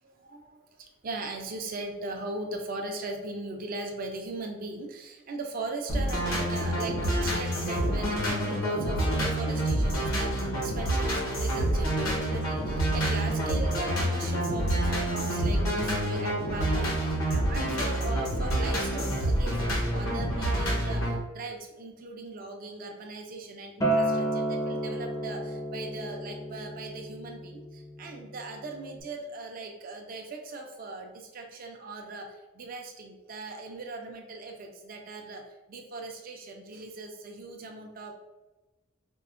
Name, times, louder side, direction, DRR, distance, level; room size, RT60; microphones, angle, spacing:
voice 1, 0.0-38.1, right 2 dB, 45° right, 2 dB, 0.4 m, -39 dB
sound 1, 5.9-21.1, right 1 dB, 85° left, 1.0 m, -27 dB
Acoustic guitar, 23.8-29.0, right 1 dB, 15° left, 0.4 m, -32 dB
4.4 x 2.1 x 2.4 m, 1.1 s
head